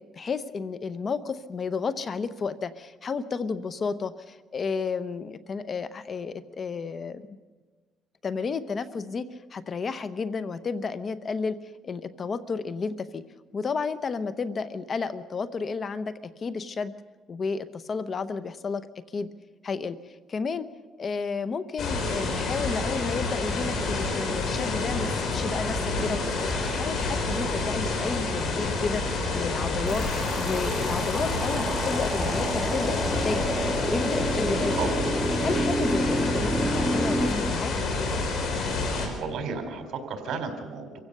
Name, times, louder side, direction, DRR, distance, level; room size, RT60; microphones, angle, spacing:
voice 1, 0.0-7.2 8.2-11.6 11.8-13.2 13.5-16.9 17.3-18.9 19.1-19.3 19.6-20.7 21.0-33.6 33.8-34.8 35.4-37.7, left 5 dB, 40° left, 14 dB, 0.9 m, -32 dB
sound 1, 21.8-39.1, left 3 dB, 65° left, 4.5 m, -28 dB
sound 2, 29.9-37.3, right 1 dB, ahead, 2.1 m, -29 dB
voice 2, 38.9-41.0, right 5 dB, 60° right, 6 dB, 3.8 m, -34 dB
25.5 x 16.0 x 6.7 m, 1.4 s
cardioid pair, 105°, 0 cm